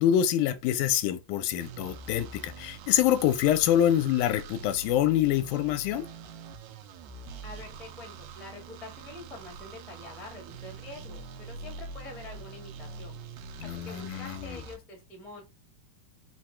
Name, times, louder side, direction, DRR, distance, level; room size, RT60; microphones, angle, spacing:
voice 1, 0.0-6.1 13.6-14.6, left 11 dB, 85° left, 2.1 m, -26 dB
sound 1, 1.6-14.8, right 4 dB, 75° right, 1.8 m, -44 dB
voice 2, 7.4-13.2 13.6-15.4, left 2 dB, ahead, 0.6 m, -46 dB
4.9 x 2.2 x 4.3 m
omnidirectional pair, 3.6 m